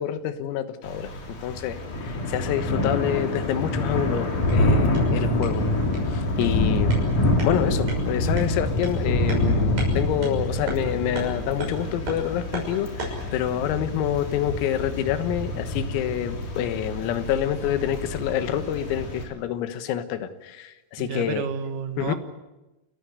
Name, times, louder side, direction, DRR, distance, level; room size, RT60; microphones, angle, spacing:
voice 1, 0.0-5.7 6.1-6.9 7.4-21.5 22.0-22.2, left 10 dB, 85° left, 10 dB, 4.1 m, -27 dB
Thunder / Rain, 0.8-19.2, left 1 dB, 40° left, 4.3 m, -26 dB
sound 1, 4.2-13.3, right 2 dB, 40° right, 7.7 m, -38 dB
voice 2, 21.0-22.1, right 7 dB, 70° right, 8 dB, 2.0 m, -30 dB
30.0 x 14.0 x 9.5 m, 1.1 s
omnidirectional pair, 6.0 m